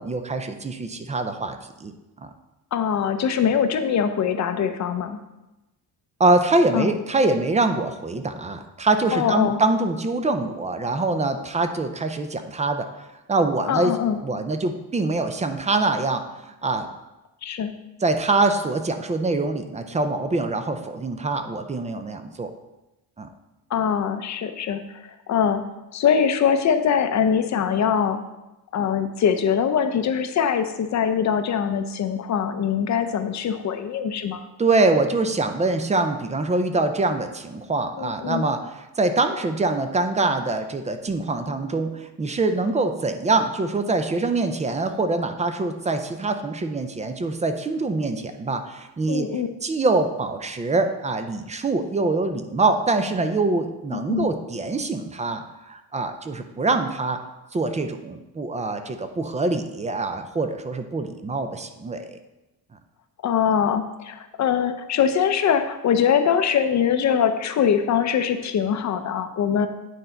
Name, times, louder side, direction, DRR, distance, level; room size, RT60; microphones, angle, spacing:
voice 1, 0.0-1.9 2.2-2.3 6.2-12.9 13.3-14.0 14.2-16.9 18.0-22.5 23.2-23.3 34.6-49.3 49.6-57.2 57.5-62.2, right 3 dB, 20° right, 7 dB, 0.4 m, -24 dB
voice 2, 2.7-5.2 6.7-6.9 9.1-9.6 13.7-14.2 17.4-17.7 23.7-24.8 25.3-25.6 25.9-28.2 28.7-34.5 38.0-38.4 49.1-49.5 53.9-54.3 63.2-69.7, left 7 dB, 45° left, 8 dB, 0.6 m, -22 dB
9.2 x 4.0 x 4.4 m, 1.0 s
cardioid pair, 145°, 39 cm